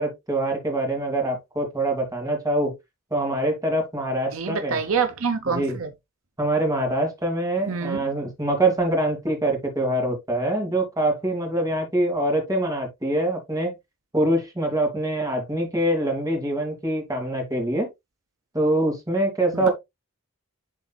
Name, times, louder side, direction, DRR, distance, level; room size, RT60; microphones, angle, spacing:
voice 1, 0.0-2.7 3.1-4.8 5.4-5.8 6.4-13.7 14.1-17.9 18.5-19.7, right 1 dB, 15° right, 2.6 m, -24 dB
voice 2, 4.3-5.9 7.7-8.0 19.5-19.7, right 5 dB, 70° right, 0.9 m, -26 dB
11.5 x 4.1 x 2.4 m
head